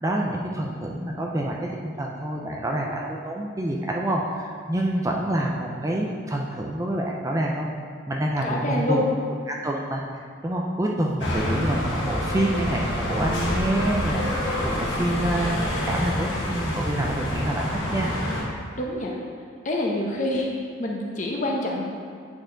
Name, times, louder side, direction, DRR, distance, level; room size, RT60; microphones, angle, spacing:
voice 1, 0.0-7.7 8.1-9.0 9.5-18.2, right 1 dB, 15° right, -1 dB, 0.4 m, -27 dB
voice 2, 8.4-9.1 18.7-19.2 19.6-20.5 20.8-21.8, left 1 dB, 40° left, -1 dB, 0.9 m, -26 dB
sound 1, 11.2-18.4, left 1 dB, 75° left, 1.5 m, -27 dB
8.8 x 4.3 x 3.9 m, 2.2 s
head